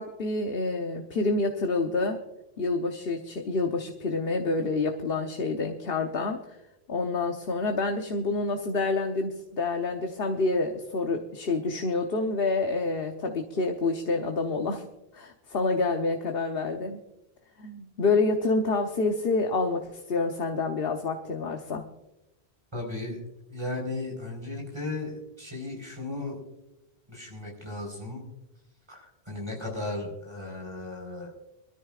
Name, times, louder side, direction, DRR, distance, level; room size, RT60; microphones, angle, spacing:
voice 1, 0.0-2.2 2.6-6.6 6.9-14.9 15.1-17.0 17.6-21.8, left 3 dB, 60° left, 3 dB, 1.2 m, -28 dB
voice 2, 22.7-23.2 23.5-26.4 27.1-28.3 28.9-31.3, left 2 dB, 25° right, 0 dB, 4.4 m, -35 dB
24.0 x 14.0 x 2.4 m, 0.94 s
omnidirectional pair, 1.1 m